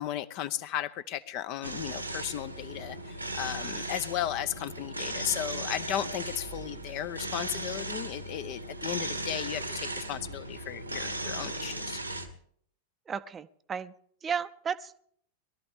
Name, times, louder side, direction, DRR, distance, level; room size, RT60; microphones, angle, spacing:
voice 1, 0.0-12.0, left 12 dB, 45° left, 13 dB, 0.7 m, -35 dB
sound 1, 1.6-12.3, right 1 dB, 85° right, 1.6 m, -37 dB
voice 2, 13.1-13.9 14.2-15.0, right 7 dB, 20° right, 13 dB, 0.7 m, -34 dB
22.0 x 13.0 x 3.7 m, 0.64 s
figure-of-eight pair, 90°, 0 cm